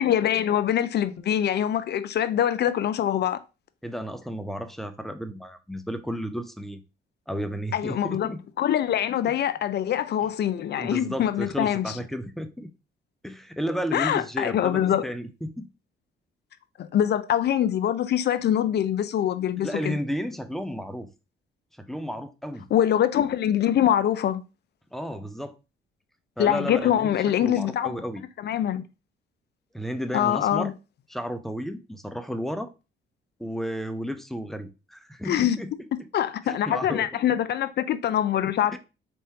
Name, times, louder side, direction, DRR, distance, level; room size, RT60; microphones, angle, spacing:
voice 1, 0.0-3.4 7.7-8.3 8.6-11.8 13.9-15.0 16.8-19.9 22.7-24.4 26.4-27.9 28.4-28.8 30.1-30.7 35.2-35.6 36.1-38.8, left 10 dB, 60° left, 0.5 m, -24 dB
voice 2, 3.8-6.8 7.3-8.4 9.3-9.4 10.7-12.7 13.2-15.7 19.6-21.1 21.8-22.7 24.9-25.6 26.4-27.1 27.4-28.2 29.7-30.7 31.1-32.7 33.4-36.1 36.4-37.1 38.7-38.8, equal, ahead, 0.5 m, -33 dB
4.2 x 3.5 x 2.8 m
cardioid pair, 90°, 20 cm